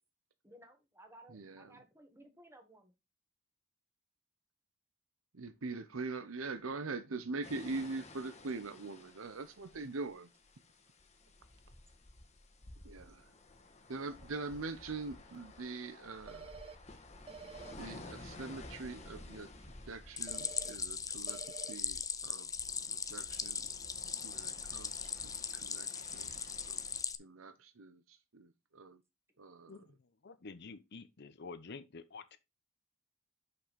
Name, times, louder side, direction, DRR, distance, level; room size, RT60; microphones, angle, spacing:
voice 1, 0.4-2.9, right 1 dB, 15° right, 1.5 m, -58 dB
voice 2, 1.3-1.8 5.3-10.3 12.8-13.3 13.9-16.6 17.8-19.5 19.9-22.5 23.1-23.7 24.2-26.8 27.2-29.0 29.4-29.7, right 3 dB, 85° right, 0.8 m, -43 dB
sound 1, 7.4-27.0, left 2 dB, 35° left, 1.4 m, -54 dB
sound 2, 16.3-16.8 17.3-17.8 20.3-20.8 21.3-21.8, right 6 dB, 30° right, 0.5 m, -49 dB
Stream, 20.2-27.2, left 6 dB, 15° left, 0.6 m, -39 dB
voice 3, 29.7-32.4, left 4 dB, 55° left, 0.8 m, -49 dB
6.1 x 5.8 x 5.2 m
head